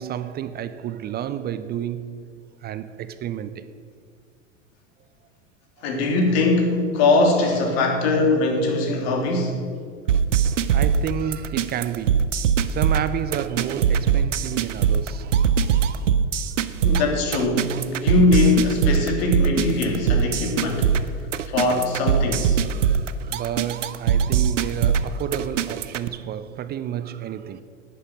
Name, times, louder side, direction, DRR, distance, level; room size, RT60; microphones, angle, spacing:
voice 1, 0.0-2.3 2.6-3.8 5.8-5.9 10.4-16.1 22.6-27.6, right 10 dB, 25° right, 0.5 m, -31 dB
voice 2, 5.8-9.6 16.8-21.0 21.4-22.6, left 3 dB, 55° left, 2.8 m, -21 dB
sound 1, 10.1-26.1, right 7 dB, 80° right, 0.7 m, -21 dB
11.0 x 9.7 x 6.2 m
figure-of-eight pair, 85°, 37 cm